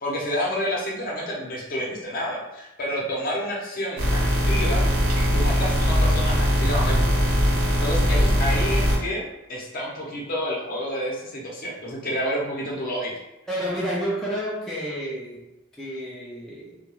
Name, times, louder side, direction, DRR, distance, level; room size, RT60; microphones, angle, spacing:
voice 1, 0.0-4.2 4.5-4.8 5.3-7.1 7.8-9.2 9.5-13.1, equal, 45° left, -4 dB, 0.7 m, -29 dB
sound 1, 4.0-9.0, equal, 80° right, 0.8 m, -21 dB
voice 2, 13.5-15.4 15.7-16.8, equal, ahead, -7 dB, 0.4 m, -30 dB
2.3 x 2.2 x 3.0 m, 0.96 s
head